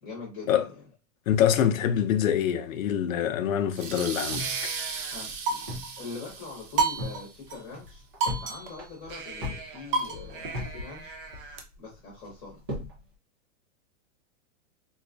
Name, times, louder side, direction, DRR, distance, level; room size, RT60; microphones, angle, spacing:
voice 1, 0.0-0.8 5.1-5.7 6.0-11.2 11.8-12.6, left 4 dB, 20° left, 0.9 m, -43 dB
voice 2, 1.3-4.7, left 9 dB, 80° left, 0.6 m, -25 dB
sound 1, 3.7-7.2, right 5 dB, 70° right, 1.0 m, -36 dB
sound 2, 4.3-6.0 6.3-6.4 6.7-7.2 7.6-8.5 8.8-10.8 11.1-11.7 12.2-13.0, left 1 dB, 20° right, 0.4 m, -37 dB
sound 3, 4.4-6.0 6.8-7.6 7.9-8.0 8.2-11.6, right 4 dB, 45° right, 0.8 m, -32 dB
4.0 x 2.3 x 2.5 m
supercardioid pair, 180°, 39 cm